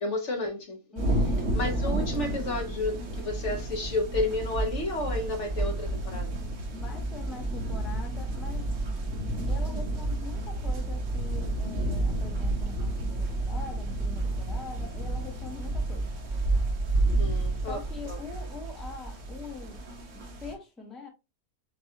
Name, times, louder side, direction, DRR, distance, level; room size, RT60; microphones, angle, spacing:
voice 1, 0.0-0.8 1.5-6.4 17.2-18.2, left 2 dB, 55° left, 1.2 m, -31 dB
voice 2, 0.9-1.4 1.8-2.0 6.7-8.7 9.5-16.1 17.7-19.8 20.1-21.1, left 4 dB, ahead, 0.8 m, -43 dB
sound 1, 1.0-20.5, right 2 dB, 60° right, 1.3 m, -30 dB
6.7 x 2.3 x 2.8 m
omnidirectional pair, 1.6 m